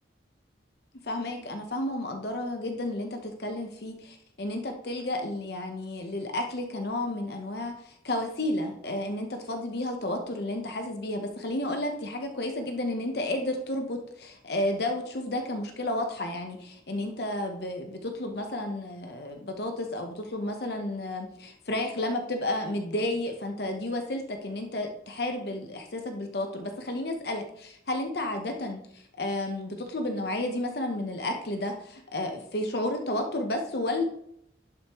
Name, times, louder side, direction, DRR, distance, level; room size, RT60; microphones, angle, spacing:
voice 1, 1.0-34.0, left 1 dB, 55° left, 4 dB, 0.9 m, -32 dB
11.5 x 5.0 x 3.0 m, 0.73 s
head